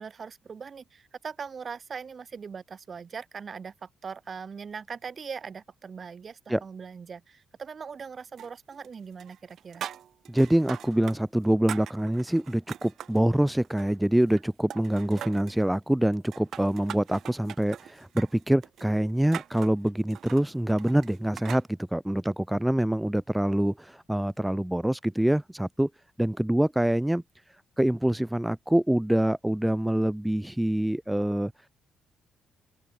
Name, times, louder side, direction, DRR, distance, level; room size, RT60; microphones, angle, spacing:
voice 1, 0.0-9.9, right 6 dB, 45° right, 3.1 m, -40 dB
sound 1, 8.4-8.9 9.2-11.2 11.4-13.2 13.6-14.4 14.7-15.6 16.1-21.7, right 10 dB, 65° right, 0.9 m, -42 dB
voice 2, 10.3-25.9 26.2-27.2 27.8-31.7, right 1 dB, 5° right, 0.8 m, -25 dB
open air
cardioid pair, 90°, 0 cm